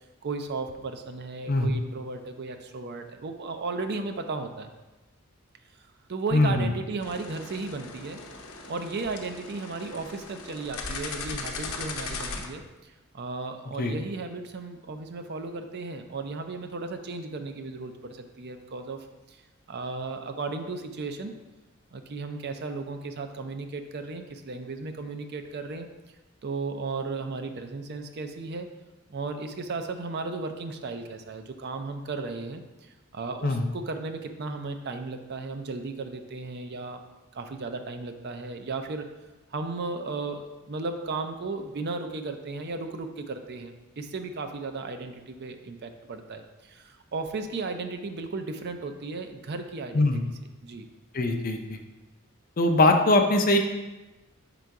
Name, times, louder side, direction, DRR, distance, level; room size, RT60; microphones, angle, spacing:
voice 1, 0.2-4.7 6.1-8.2 8.7-19.4 19.7-21.3 21.9-25.9 26.4-28.7 29.1-37.0 37.3-39.1 39.5-50.1 50.6-50.9, right 3 dB, 50° right, 7 dB, 0.5 m, -35 dB
voice 2, 6.3-6.7 13.8-13.9 33.4-33.7 49.9-50.2 51.1-51.8 52.6-53.6, left 2 dB, 40° left, 5 dB, 0.5 m, -22 dB
sound 1, 7.0-12.5, left 4 dB, 85° left, 0.8 m, -38 dB
5.4 x 3.9 x 4.7 m, 1.1 s
head